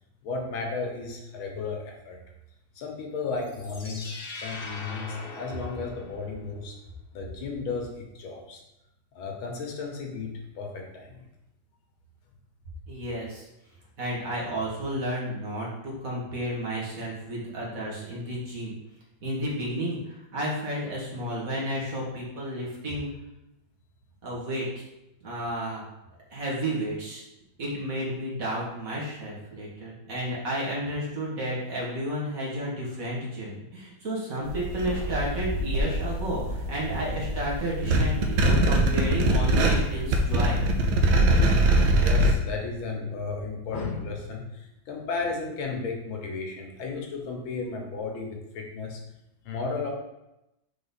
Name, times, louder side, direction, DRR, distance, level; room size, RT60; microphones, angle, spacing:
voice 1, 0.2-2.2 2.8-6.7 7.1-8.6 9.1-11.3 42.0-49.0 49.4-49.9, left 4 dB, 85° left, 1 dB, 1.9 m, -34 dB
sound 1, 3.4-6.5, left 2 dB, 45° left, 0.7 m, -41 dB
voice 2, 12.9-13.5 14.0-18.7 19.2-23.1 24.2-24.7 25.2-25.8 26.3-27.2 27.6-40.6, right 1 dB, 45° right, -5 dB, 1.9 m, -32 dB
sound 2, 34.5-42.3, right 1 dB, 85° right, 1.6 m, -23 dB
4.8 x 3.9 x 5.6 m, 0.90 s
omnidirectional pair, 2.2 m